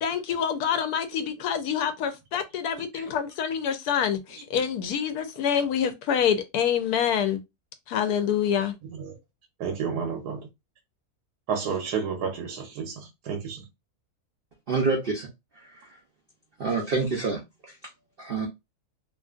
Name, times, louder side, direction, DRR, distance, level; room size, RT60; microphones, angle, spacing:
voice 1, 0.0-7.4 7.9-8.7, left 8 dB, 75° left, 1.1 m, -26 dB
voice 2, 9.6-10.4 11.5-13.6, right 6 dB, 80° right, 1.3 m, -31 dB
voice 3, 14.7-15.3 15.6-15.9 16.6-17.4 17.7-17.8 18.2-18.5, right 4 dB, 55° right, 0.6 m, -27 dB
2.9 x 2.5 x 2.4 m
omnidirectional pair, 1.7 m